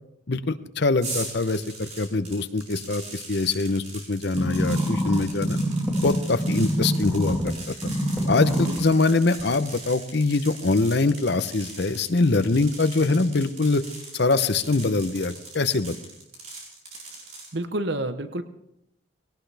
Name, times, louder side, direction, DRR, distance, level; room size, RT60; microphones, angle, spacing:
voice 1, 0.3-5.6 6.0-7.7 8.3-13.8 14.1-15.9, left 3 dB, 55° left, 11 dB, 0.8 m, -23 dB
sound 1, 1.0-17.5, right 3 dB, 35° right, 4.7 m, -41 dB
sound 2, 4.3-7.5 7.8-8.8 9.4-9.5, equal, 10° right, 2.5 m, -25 dB
voice 2, 17.5-18.4, right 1 dB, 60° right, 10 dB, 0.9 m, -30 dB
20.0 x 17.5 x 3.4 m, 0.82 s
head